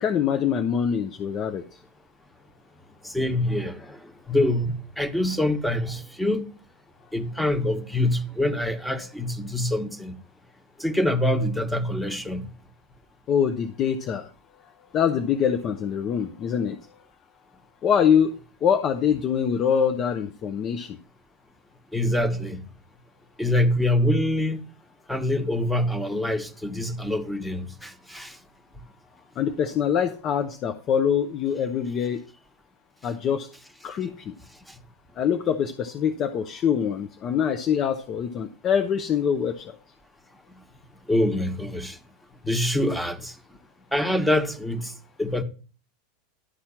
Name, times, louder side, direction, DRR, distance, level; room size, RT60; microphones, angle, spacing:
voice 1, 0.0-1.6 13.3-14.2 14.9-16.8 17.8-18.3 18.6-21.0 29.4-32.2 33.0-33.5 33.8-34.3 35.2-39.7, left 8 dB, 40° left, 0.8 m, -24 dB
voice 2, 3.0-6.5 7.1-10.2 10.8-12.5 21.9-22.6 23.4-24.6 25.1-28.4 34.7-34.8 40.5-40.6 41.1-42.0 42.4-43.4 43.9-44.9 45.2-45.4, left 1 dB, 5° left, 1.4 m, -25 dB
11.5 x 4.4 x 7.2 m
hypercardioid pair, 90°, 0 cm